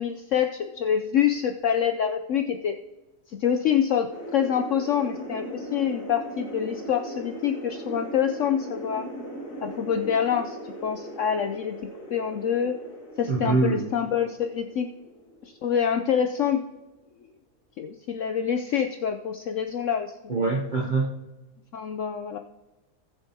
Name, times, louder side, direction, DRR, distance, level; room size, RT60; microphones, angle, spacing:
voice 1, 0.0-2.8 3.3-9.0 9.6-11.8 12.1-12.8 13.2-14.9 15.4-16.6 17.8-20.5 21.7-22.4, left 8 dB, 75° left, 6 dB, 0.7 m, -26 dB
sound 1, 4.1-16.5, right 1 dB, 50° left, 2.4 m, -39 dB
voice 2, 13.3-13.9 20.3-21.1, right 3 dB, 55° right, 0 dB, 0.5 m, -24 dB
19.0 x 7.0 x 2.7 m, 1.1 s
omnidirectional pair, 1.8 m